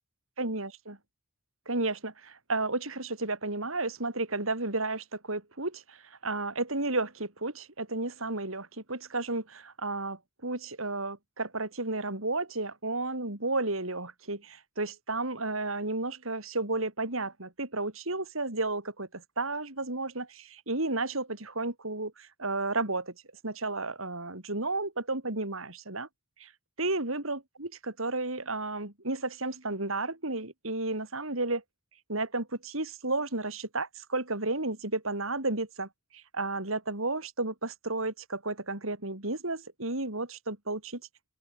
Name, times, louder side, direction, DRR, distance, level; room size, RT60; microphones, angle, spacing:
voice 1, 0.4-1.0 1.7-23.1 23.4-26.1 26.4-26.5 26.8-31.6 32.1-41.0, right 2 dB, 75° right, 5.2 m, -32 dB
open air
head